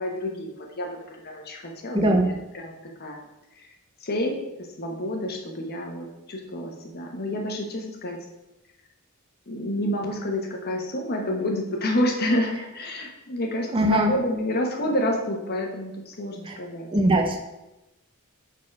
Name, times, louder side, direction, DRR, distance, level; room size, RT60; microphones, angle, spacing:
voice 1, 0.0-2.7 3.0-3.2 4.0-4.4 4.8-8.2 9.5-16.9, left 1 dB, 45° left, 1 dB, 1.1 m, -29 dB
voice 2, 1.9-2.4 13.7-14.2 16.5-16.6 16.9-17.4, right 1 dB, 25° right, 3 dB, 0.6 m, -21 dB
6.5 x 4.1 x 4.7 m, 0.95 s
head